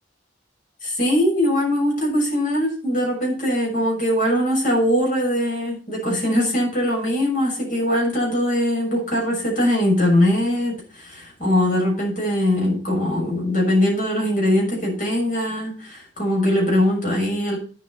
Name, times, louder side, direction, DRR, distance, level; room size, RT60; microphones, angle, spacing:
voice 1, 0.8-17.6, left 1 dB, 45° left, -1 dB, 6.6 m, -21 dB
9.3 x 8.2 x 5.5 m, 0.39 s
head